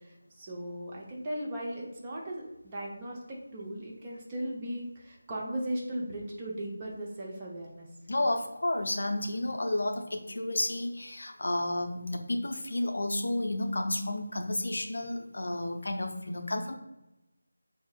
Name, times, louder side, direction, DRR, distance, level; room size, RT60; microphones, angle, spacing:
voice 1, 0.0-7.9, right 1 dB, 20° right, -2 dB, 0.7 m, -37 dB
voice 2, 8.1-16.8, left 1 dB, 55° left, 5 dB, 0.6 m, -31 dB
6.5 x 2.8 x 2.4 m, 0.96 s
figure-of-eight pair, 165°, 0 cm